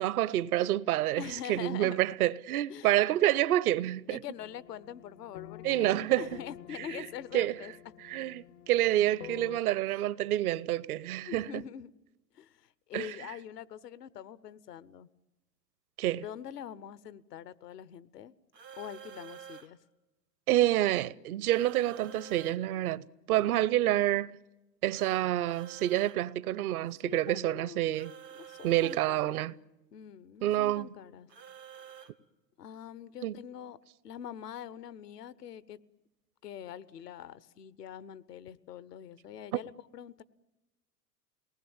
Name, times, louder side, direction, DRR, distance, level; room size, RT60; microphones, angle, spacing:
voice 1, 0.0-4.2 5.6-6.3 6.8-7.1 7.3-7.6 8.1-11.6 12.9-13.2 16.0-16.2 20.5-24.4 24.8-28.1 28.6-29.6 30.4-30.9 33.2-33.4 39.5-39.6, right 14 dB, 65° right, 0.8 m, -28 dB
voice 2, 1.2-2.0 2.7-3.0 3.6-3.7 4.1-7.7 11.2-11.9 12.3-15.1 16.2-18.3 18.8-19.8 27.0-28.1 28.3-29.6 29.9-31.3 32.6-33.8 34.0-35.8 36.4-40.2, left 9 dB, 75° left, 1.0 m, -44 dB
sound 1, 4.4-9.6, left 13 dB, 50° left, 0.7 m, -49 dB
sound 2, 18.5-19.7 21.5-22.6 24.9-26.2 27.9-29.0 31.3-32.1, right 8 dB, 85° right, 1.6 m, -49 dB
28.0 x 19.5 x 7.2 m
hypercardioid pair, 95°, 48 cm